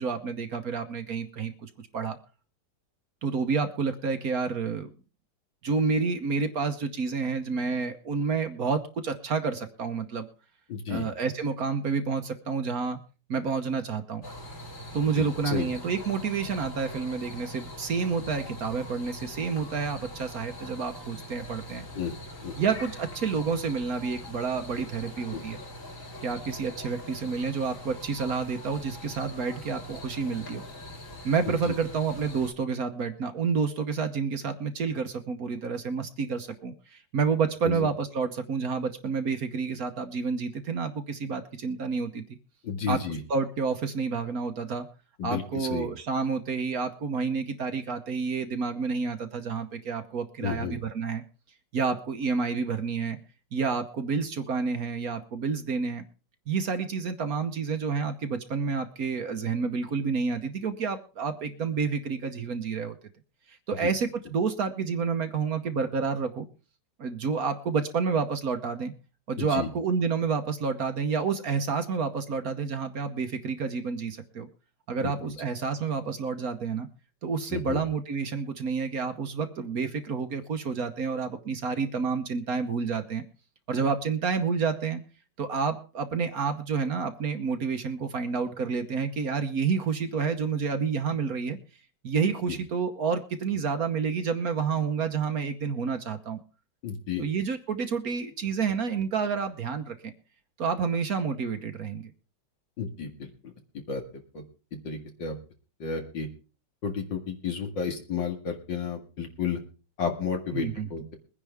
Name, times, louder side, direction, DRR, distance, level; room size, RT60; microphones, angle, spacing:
voice 1, 0.0-2.2 3.2-4.9 5.6-10.3 10.9-13.0 13.3-14.2 14.9-21.9 22.6-25.6 26.2-30.6 31.2-42.2 42.9-43.0 43.3-44.9 45.2-51.2 51.7-53.2 53.5-56.0 56.5-63.0 63.5-66.5 67.0-68.9 69.3-74.5 74.9-76.9 77.2-83.2 83.7-85.0 85.4-91.6 92.0-96.4 97.2-100.1 100.6-102.1 110.5-111.1, right 5 dB, 55° right, 8 dB, 1.3 m, -29 dB
voice 2, 10.7-11.0 15.2-15.7 22.0-22.1 22.4-22.5 25.3-25.4 31.5-31.8 37.6-37.9 42.6-43.2 45.2-45.9 50.4-50.8 63.8-63.9 69.4-69.7 75.0-75.1 77.5-77.8 96.8-97.2 102.8-103.5 103.9-104.0 104.3-104.4 104.8-105.3 105.8-106.3 106.8-109.6 110.0-111.1, left 6 dB, 70° left, 4 dB, 2.7 m, -32 dB
sound 1, 14.2-32.5, left 1 dB, 40° left, 2.8 m, -42 dB
22.0 x 10.0 x 3.5 m, 0.35 s
omnidirectional pair, 2.1 m